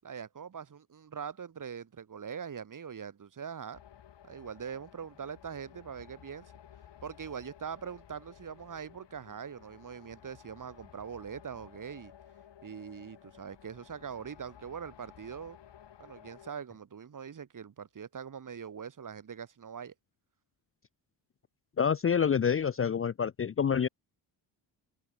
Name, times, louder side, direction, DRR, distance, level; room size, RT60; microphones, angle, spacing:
voice 1, 0.0-3.8 4.2-6.5 7.0-12.1 12.6-15.6 16.0-19.9, right 7 dB, 40° right, 2.1 m, -42 dB
sound 1, 3.7-16.5, left 10 dB, 60° left, 3.6 m, -55 dB
voice 2, 21.8-23.9, left 7 dB, 30° left, 0.6 m, -27 dB
cardioid pair, 80°, 46 cm